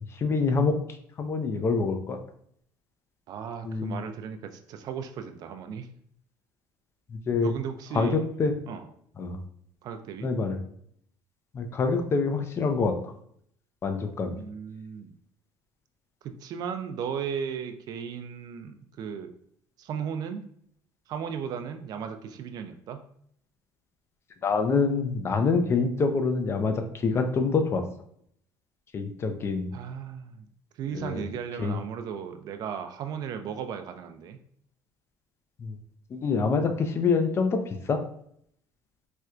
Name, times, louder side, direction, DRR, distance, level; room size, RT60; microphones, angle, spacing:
voice 1, 0.1-0.8 1.2-2.2 3.6-4.0 7.1-7.5 7.9-8.6 9.2-9.4 10.2-10.6 11.5-13.0 13.8-14.4 24.4-27.9 28.9-29.7 30.9-31.2 31.6-31.8 35.6-35.8 36.1-38.0, left 4 dB, 30° left, 6 dB, 0.4 m, -26 dB
voice 2, 3.3-5.9 7.4-8.2 8.7-8.9 9.8-10.3 14.3-15.1 16.2-19.3 19.8-20.4 21.1-23.0 29.7-30.5 30.8-34.4, right 7 dB, 55° right, 8 dB, 0.4 m, -36 dB
4.3 x 2.2 x 2.4 m, 0.68 s
cardioid pair, 115°, 8 cm